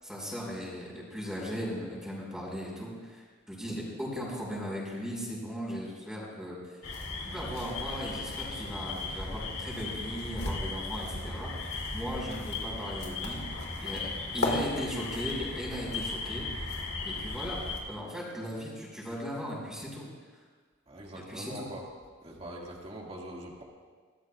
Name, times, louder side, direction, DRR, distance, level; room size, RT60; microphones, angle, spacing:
voice 1, 0.0-6.6 7.2-11.5 11.9-13.4 13.8-16.4 17.0-17.6 17.9-20.1 21.1-21.7, equal, 5° right, -4 dB, 5.5 m, -37 dB
sound 1, 6.8-17.8, left 3 dB, 80° left, 3.6 m, -36 dB
voice 2, 20.9-21.8 22.2-23.6, right 1 dB, 30° right, -2 dB, 2.3 m, -43 dB
25.5 x 18.5 x 2.5 m, 1.5 s
head